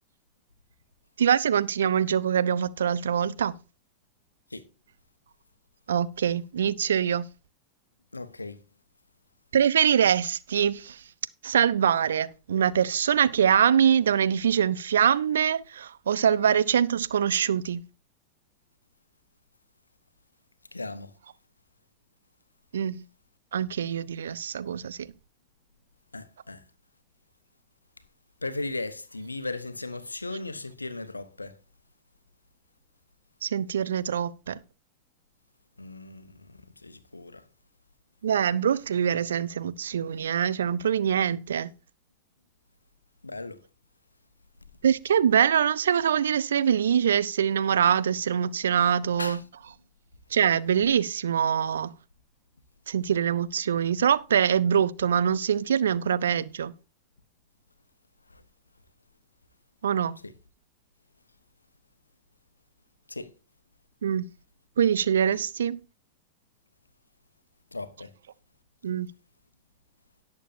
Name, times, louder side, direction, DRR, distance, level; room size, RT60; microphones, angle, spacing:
voice 1, 1.2-3.6 5.9-7.3 9.5-11.0 11.4-17.8 22.7-23.0 23.5-25.1 33.4-34.6 38.2-41.7 44.8-49.4 50.3-51.9 52.9-56.7 59.8-60.2 64.0-64.3 64.8-65.8 68.8-69.1, right 8 dB, 65° right, 0.6 m, -24 dB
voice 2, 8.1-8.6 20.7-21.1 26.1-26.6 28.4-31.6 35.8-37.4 43.2-43.6 49.2-49.4 58.3-58.4 60.2-60.3 63.1-63.3 67.7-68.1, left 2 dB, 80° left, 0.9 m, -37 dB
17.5 x 6.7 x 2.6 m
figure-of-eight pair, 90°, 0 cm